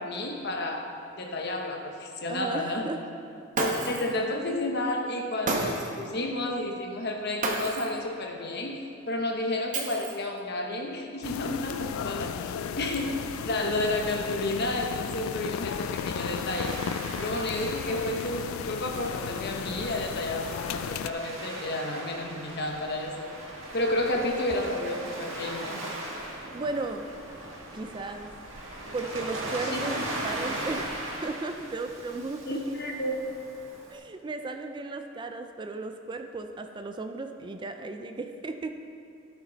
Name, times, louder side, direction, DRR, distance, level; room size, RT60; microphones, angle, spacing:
voice 1, 0.0-2.9 3.6-13.2 13.4-16.8 17.2-23.3 23.7-25.8 29.7-29.8 32.5-33.2, left 1 dB, 55° left, 2 dB, 1.1 m, -31 dB
voice 2, 2.2-3.0 24.1-24.3 26.3-27.1 27.7-28.3 28.9-32.8 33.9-38.8, right 3 dB, 25° right, 6 dB, 0.4 m, -35 dB
Shatter, 3.5-4.2 5.5-6.0 7.4-8.0 9.7-10.4, right 2 dB, 40° right, 1.1 m, -30 dB
sound 1, 11.2-21.1, left 7 dB, 90° left, 0.3 m, -35 dB
Waves surf, 15.2-34.0, right 1 dB, 70° right, 1.7 m, -39 dB
14.5 x 6.1 x 4.0 m, 2.5 s
head